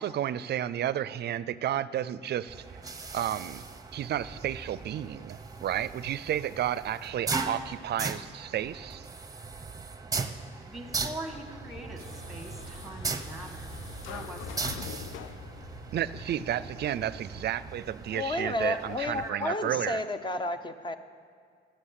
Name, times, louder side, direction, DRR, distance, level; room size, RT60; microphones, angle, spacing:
voice 1, 0.0-2.6 3.1-3.6 3.9-9.1 15.9-20.0, right 11 dB, 55° right, 18 dB, 0.5 m, -32 dB
sound 1, 2.5-19.3, right 4 dB, 20° right, 0.9 m, -39 dB
sound 2, 10.7-17.8, right 2 dB, 45° left, 3.9 m, -47 dB
voice 2, 10.7-14.7 18.7-18.8 19.1-19.8, right 1 dB, ahead, 5 dB, 1.6 m, -42 dB
sound 3, 12.0-17.2, left 11 dB, 80° left, 0.4 m, -46 dB
voice 3, 18.1-21.0, left 2 dB, 25° left, 10 dB, 0.8 m, -31 dB
12.0 x 8.0 x 8.2 m, 2.2 s
cardioid pair, 90°, 20 cm